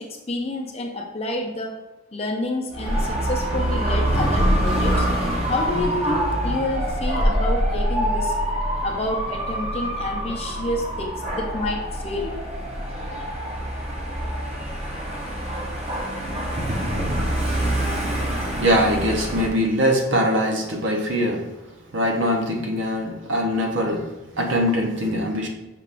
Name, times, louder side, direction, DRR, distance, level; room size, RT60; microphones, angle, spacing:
voice 1, 0.0-1.8 2.1-5.1 5.5-8.3 8.8-12.4, left 1 dB, 30° left, 1 dB, 0.5 m, -29 dB
Dog / Motorcycle, 2.7-19.5, equal, 30° right, 0.7 m, -25 dB
voice 2, 18.6-21.4 21.9-24.1 24.4-25.5, equal, 65° right, 2 dB, 0.8 m, -22 dB
5.7 x 3.5 x 2.5 m, 1.1 s
head